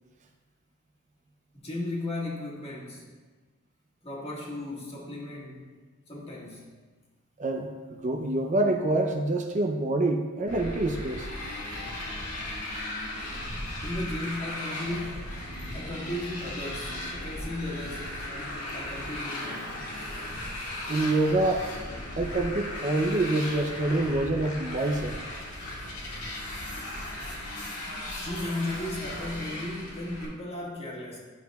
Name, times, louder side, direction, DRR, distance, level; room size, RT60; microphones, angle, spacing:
voice 1, 1.5-3.0 4.0-5.6 6.1-6.7 13.8-15.4 15.7-19.9 28.2-31.2, left 1 dB, 30° left, -4 dB, 1.6 m, -36 dB
voice 2, 7.4-11.3 20.9-21.7 22.1-25.2, right 2 dB, 35° right, 3 dB, 0.5 m, -26 dB
Motorcycle, 10.5-30.2, left 1 dB, 85° left, 1.9 m, -36 dB
11.0 x 6.8 x 2.3 m, 1.4 s
head